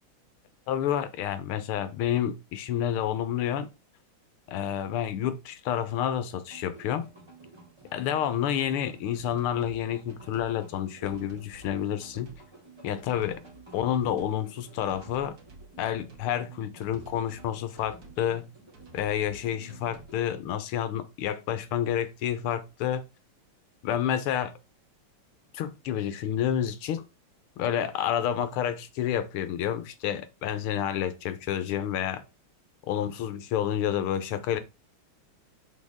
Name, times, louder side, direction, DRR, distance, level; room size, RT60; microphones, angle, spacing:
voice 1, 0.7-3.7 4.5-7.1 7.9-12.3 12.8-13.4 13.7-15.4 15.8-18.5 18.9-23.0 23.8-24.5 25.5-27.1 27.6-32.2 32.9-34.6, left 10 dB, 85° left, 1.7 m, -29 dB
sound 1, 6.5-20.3, right 2 dB, 15° right, 1.8 m, -53 dB
sound 2, 9.1-9.8 10.1-10.5 11.0-11.7 12.0-12.4 13.0-13.6 13.9-14.4 14.9-16.3 16.8-17.5 17.8-18.2 18.7-19.4 19.7-20.1, right 2 dB, 50° right, 2.0 m, -51 dB
6.3 x 4.9 x 3.6 m
omnidirectional pair, 2.3 m